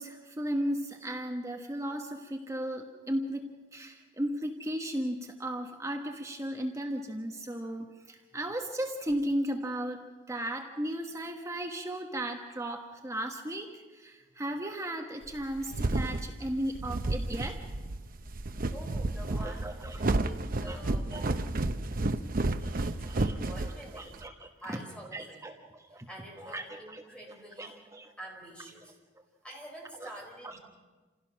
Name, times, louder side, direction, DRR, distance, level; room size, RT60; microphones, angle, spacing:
voice 1, 0.0-17.6 19.3-20.2 20.7-20.8 21.1-21.4 23.0-23.4 23.6-24.8 25.1-26.1 26.4-27.0 27.6-28.1 30.0-30.1 30.4-30.6, right 1 dB, 15° right, 3 dB, 1.2 m, -36 dB
sound 1, 15.3-24.3, right 2 dB, 45° right, 0.7 m, -31 dB
voice 2, 18.7-21.2 22.5-24.2 24.6-25.6 26.1-27.7 28.2-28.9 29.4-30.6, right 1 dB, 5° left, -1 dB, 4.9 m, -47 dB
28.0 x 16.0 x 6.3 m, 1.3 s
head